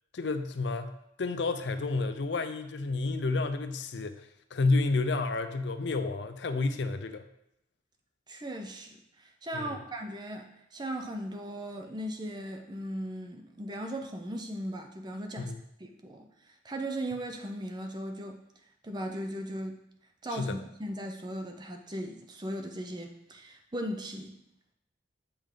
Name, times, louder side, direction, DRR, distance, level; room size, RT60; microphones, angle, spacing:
voice 1, 0.1-0.9 1.2-7.2 9.5-9.8 15.4-15.6 20.3-20.6, left 3 dB, 70° left, 9 dB, 0.5 m, -30 dB
voice 2, 8.3-15.5 15.8-16.3 16.6-18.4 18.8-19.8 20.2-24.4, right 1 dB, 25° right, 3 dB, 0.6 m, -38 dB
7.8 x 5.2 x 3.8 m, 0.81 s
head